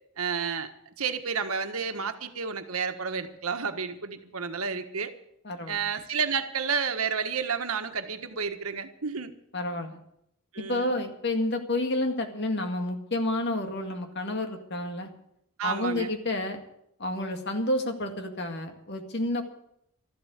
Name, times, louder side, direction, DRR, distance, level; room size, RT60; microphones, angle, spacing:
voice 1, 0.2-0.7 1.0-5.1 5.7-9.3 10.5-11.0 15.6-16.1, right 6 dB, 85° right, 7 dB, 1.5 m, -31 dB
voice 2, 5.4-5.8 9.5-10.0 10.7-15.1 15.6-16.6 17.0-19.4, left 1 dB, 55° left, 5 dB, 2.0 m, -30 dB
13.5 x 12.0 x 8.1 m, 0.76 s
head